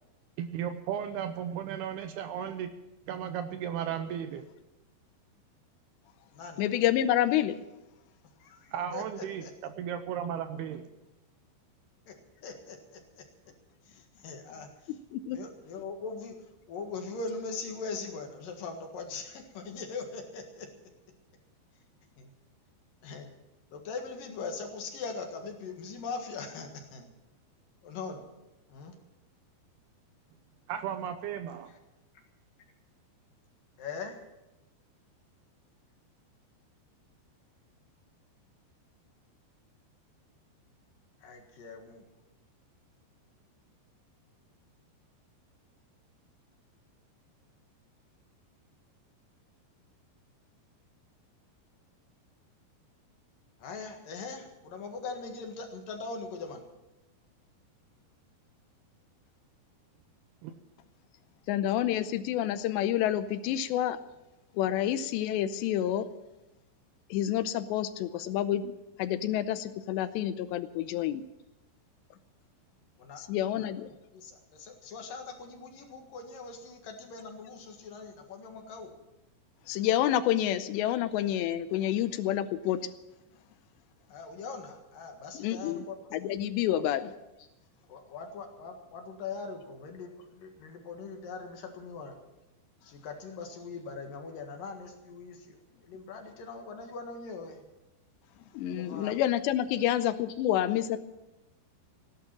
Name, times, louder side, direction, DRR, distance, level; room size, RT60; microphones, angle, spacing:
voice 1, 0.4-2.7 3.1-4.4 8.7-10.9 30.7-31.7 60.4-60.5, right 9 dB, 80° right, 9 dB, 2.5 m, -35 dB
voice 2, 6.6-7.6 14.9-15.4 61.5-64.0 64.6-66.1 67.1-68.7 69.0-71.3 73.2-73.9 79.7-82.8 85.3-85.9 86.1-87.1 98.5-101.0, left 11 dB, 80° left, 12 dB, 2.8 m, -28 dB
voice 3, 8.9-9.5 12.1-12.2 12.4-13.0 14.2-14.7 15.3-16.4 16.7-20.7 22.2-22.3 23.0-23.3 23.7-27.1 27.8-28.2 28.7-28.9 33.8-34.1 41.2-42.0 53.6-56.6 73.0-73.2 73.5-73.7 74.1-74.3 74.6-78.9 80.0-80.1 84.1-86.0 87.9-92.2 92.9-95.4 95.9-97.6 98.7-99.1 99.8-100.0, left 4 dB, 60° left, 4 dB, 3.0 m, -41 dB
16.0 x 11.5 x 7.5 m, 0.95 s
omnidirectional pair, 5.1 m